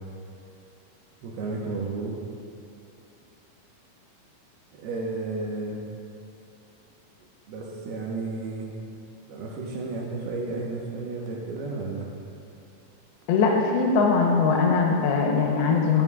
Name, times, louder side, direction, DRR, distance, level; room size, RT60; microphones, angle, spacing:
voice 1, 1.2-2.1 4.7-5.8 7.2-8.7 9.2-12.1, right 3 dB, 85° right, -2 dB, 3.2 m, -32 dB
voice 2, 13.3-16.0, left 4 dB, 80° left, 0 dB, 2.9 m, -21 dB
17.0 x 7.6 x 2.5 m, 2.7 s
omnidirectional pair, 4.5 m